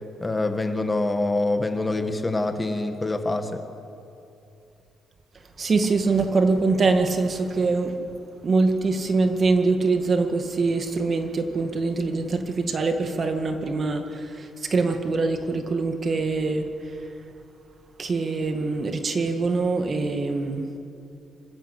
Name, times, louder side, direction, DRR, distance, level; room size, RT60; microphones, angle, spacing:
voice 1, 0.2-3.6, left 2 dB, 20° left, 7 dB, 1.8 m, -25 dB
voice 2, 5.3-8.0 8.4-17.1 18.0-20.7, right 3 dB, 40° right, 6 dB, 2.0 m, -24 dB
26.5 x 14.0 x 8.3 m, 2.6 s
cardioid pair, 90°, 0 cm